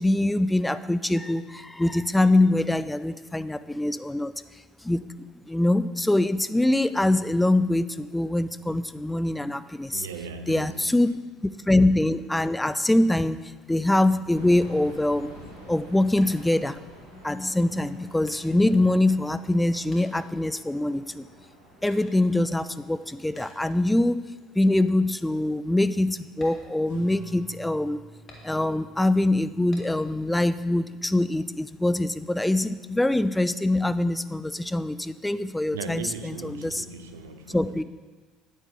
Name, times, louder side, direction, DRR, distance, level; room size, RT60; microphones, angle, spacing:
voice 1, 0.0-4.3 4.8-10.1 10.5-15.4 15.7-16.8 17.1-21.3 21.8-24.2 24.5-28.0 28.4-36.8 37.5-37.8, left 1 dB, 10° left, 14 dB, 0.4 m, -24 dB
voice 2, 9.9-11.1 35.7-37.8, right 4 dB, 75° right, 9 dB, 0.6 m, -38 dB
sound 1, 14.2-25.1, equal, 90° left, 2.5 m, -49 dB
sound 2, 16.2-17.1 17.8-19.6 19.9-21.1 21.8-22.5 23.4-23.8 24.3-24.5 25.0-25.1 25.5-25.7 26.3-27.5 28.3-28.9 29.7-30.3 30.7-31.5, left 1 dB, 35° left, 2.1 m, -52 dB
sound 3, 26.8-31.9, right 2 dB, 70° left, 2.1 m, -49 dB
9.8 x 9.5 x 3.6 m, 1.3 s
figure-of-eight pair, 60°, 0 cm